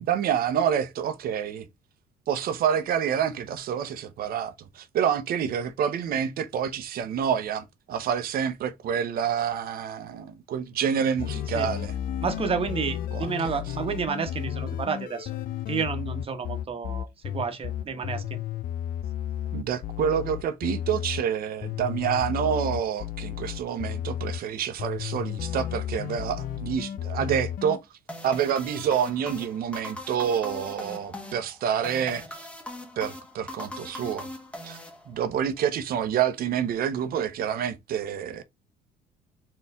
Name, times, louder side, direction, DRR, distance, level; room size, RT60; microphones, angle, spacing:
voice 1, 0.0-1.7 2.3-12.0 13.1-13.3 13.6-13.7 17.8-18.1 19.5-27.8 28.2-32.2 33.0-34.3 34.6-34.8 35.1-38.4, right 8 dB, 65° right, 0.8 m, -28 dB
sound 1, 11.2-21.2 21.6-24.4 24.8-27.8, left 10 dB, 55° left, 0.5 m, -33 dB
voice 2, 12.2-15.3 15.7-18.4, right 6 dB, 35° right, 1.1 m, -30 dB
sound 2, 28.1-35.5, left 1 dB, 5° left, 1.1 m, -40 dB
4.5 x 3.2 x 3.5 m
cardioid pair, 110°, 17 cm